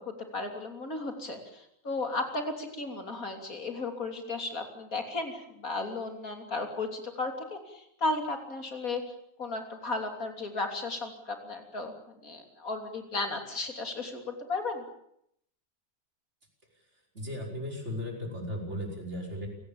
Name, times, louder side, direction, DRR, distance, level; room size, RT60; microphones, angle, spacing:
voice 1, 0.0-11.9 12.2-14.8, left 3 dB, 75° left, 4 dB, 3.7 m, -35 dB
voice 2, 17.1-19.5, equal, 50° right, 1 dB, 5.8 m, -36 dB
29.5 x 18.0 x 7.3 m, 0.74 s
omnidirectional pair, 1.5 m